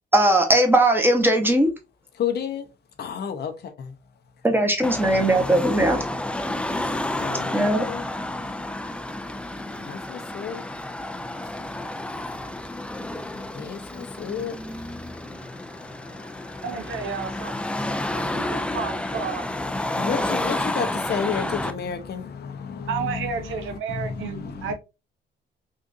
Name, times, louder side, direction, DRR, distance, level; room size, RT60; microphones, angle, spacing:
voice 1, 0.1-1.7 4.4-6.0 7.5-7.9, right 1 dB, 10° right, 1.0 m, -19 dB
voice 2, 2.2-2.7 3.0-4.0 7.2-8.0 9.8-10.6 13.3-18.8 19.7-24.7, left 7 dB, 55° left, 0.7 m, -33 dB
Car passing by / Traffic noise roadway noise / Engine, 4.8-21.7, left 1 dB, 5° left, 0.4 m, -30 dB
voice 3, 16.6-17.5 18.3-19.5 22.9-24.7, right 6 dB, 80° right, 0.7 m, -31 dB
3.7 x 2.5 x 2.5 m
cardioid pair, 90°, 20 cm